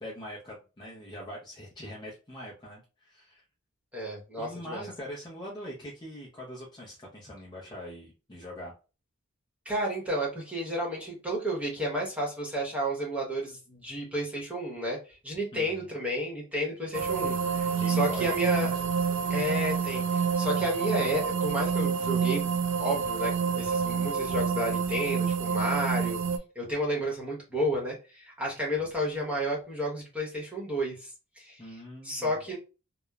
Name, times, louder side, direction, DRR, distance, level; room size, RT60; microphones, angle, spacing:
voice 1, 0.0-3.4 4.4-8.7 15.5-15.9 17.7-18.7 31.6-32.4, left 1 dB, 20° left, -4 dB, 0.5 m, -43 dB
voice 2, 3.9-4.9 9.6-15.0 15.2-18.7 19.3-22.5 22.8-26.2 26.5-31.1 31.4-32.6, equal, 5° right, -3 dB, 0.9 m, -31 dB
sound 1, 16.9-26.4, right 6 dB, 60° right, 0.3 m, -28 dB
2.9 x 2.0 x 2.3 m, 0.32 s
head